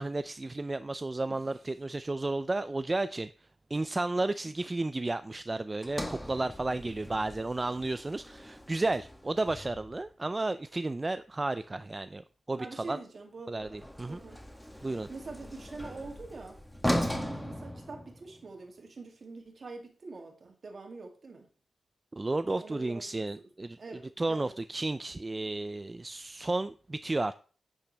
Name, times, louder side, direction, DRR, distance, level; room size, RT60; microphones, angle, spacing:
voice 1, 0.0-3.3 3.7-13.0 13.5-14.2 14.8-15.1 22.1-23.8 24.2-27.3, right 2 dB, 25° right, 0.4 m, -32 dB
voice 2, 1.3-1.6 6.7-7.2 12.6-13.8 14.1-14.4 15.1-21.5 22.6-23.3 23.8-24.5, right 3 dB, 50° right, 2.5 m, -45 dB
Sliding door, 5.8-10.1 13.6-18.5, equal, 5° left, 1.5 m, -38 dB
10.0 x 8.8 x 3.4 m
wide cardioid pair, 130°, 0 cm